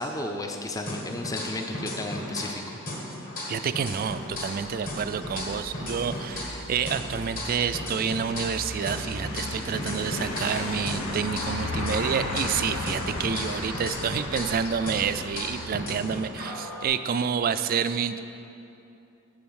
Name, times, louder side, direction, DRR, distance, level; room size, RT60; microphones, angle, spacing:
voice 1, 0.0-2.8, left 2 dB, 15° left, 3 dB, 0.5 m, -33 dB
sound 1, 0.9-2.6 2.9-6.6 6.9-10.6 10.9-14.6 14.9-16.9, left 1 dB, 45° left, 1.7 m, -35 dB
voice 2, 3.5-18.2, right 7 dB, 45° right, 12 dB, 0.3 m, -28 dB
sound 2, 3.8-16.1, left 1 dB, 75° left, 1.1 m, -36 dB
7.7 x 7.0 x 6.3 m, 2.8 s
head